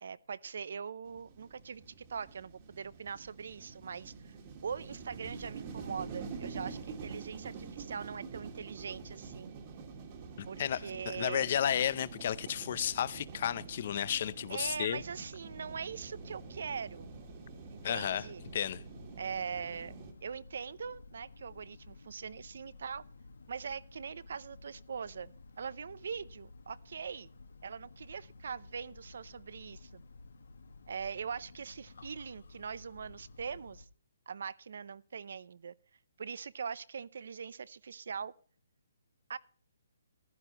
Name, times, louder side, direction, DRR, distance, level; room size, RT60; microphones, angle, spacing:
voice 1, 0.0-4.4 4.6-9.5 10.5-11.5 14.5-17.1 17.7-18.4 19.2-19.9 20.2-23.0 23.5-27.3 27.6-30.0 30.9-33.9 34.3-35.7 36.2-38.3 39.3-39.4, right 6 dB, 60° right, 0.6 m, -42 dB
sound 1, 1.1-20.1, right 5 dB, 25° right, 1.7 m, -47 dB
voice 2, 10.4-15.0 17.8-18.3 18.5-18.8, left 9 dB, 40° left, 0.5 m, -33 dB
sound 2, 14.7-33.9, left 3 dB, 80° left, 1.5 m, -54 dB
15.0 x 11.5 x 2.9 m
hypercardioid pair, 170°, 0 cm